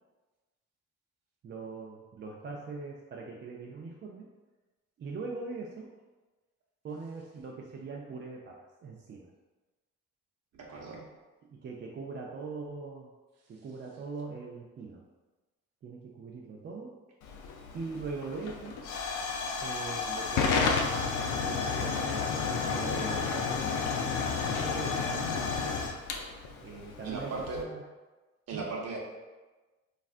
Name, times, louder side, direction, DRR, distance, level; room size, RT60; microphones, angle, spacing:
voice 1, 1.4-4.3 5.0-5.9 6.8-9.3 11.5-13.1 13.5-15.1 15.8-17.0 17.7-18.8 19.6-20.6 21.2-23.9 24.5-25.7 26.6-27.3 27.6-27.8 28.5-28.7, right 4 dB, 40° right, -2 dB, 0.4 m, -41 dB
voice 2, 10.5-11.0 27.0-27.6 28.5-29.0, right 3 dB, 55° right, -2 dB, 0.8 m, -37 dB
Hiss / Fire / Tick, 17.2-27.6, left 5 dB, 80° left, 0.5 m, -31 dB
3.2 x 2.4 x 2.4 m, 1.2 s
cardioid pair, 90°, 30 cm